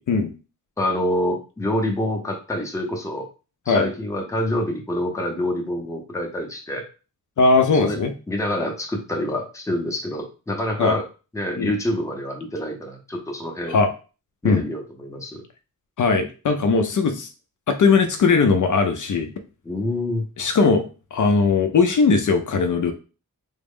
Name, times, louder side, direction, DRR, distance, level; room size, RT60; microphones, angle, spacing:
voice 1, 0.8-3.3 3.7-6.8 7.7-8.0 8.3-11.1 11.3-13.8 14.4-15.4 19.6-20.3, left 1 dB, 10° left, 1 dB, 0.6 m, -26 dB
voice 2, 7.4-8.1 10.8-11.0 11.6-11.7 13.7-13.9 14.4-14.6 16.0-17.3 17.7-19.3 20.4-20.8 21.1-22.9, left 4 dB, 60° left, 6 dB, 0.5 m, -19 dB
3.5 x 2.0 x 3.6 m, 0.33 s
wide cardioid pair, 175°, 34 cm